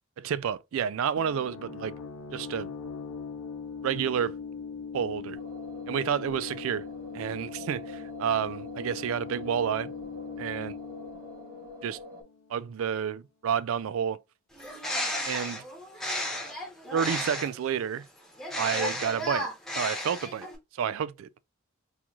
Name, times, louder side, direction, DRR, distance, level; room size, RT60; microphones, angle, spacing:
voice 1, 0.2-1.9 2.3-2.7 3.8-4.3 4.9-5.4 5.9-6.8 7.1-9.9 10.4-10.8 11.8-12.0 12.5-14.2 15.2-15.6 16.9-18.1 18.6-19.5 19.8-20.5 20.7-21.3, right 8 dB, 70° right, 0.3 m, -30 dB
sound 1, 1.2-12.7, left 5 dB, 90° left, 0.8 m, -41 dB
sound 2, 5.3-12.2, left 1 dB, 40° right, 1.1 m, -45 dB
Bird, 14.5-17.7 18.4-20.6, left 1 dB, ahead, 0.9 m, -33 dB
3.8 x 3.0 x 2.3 m
head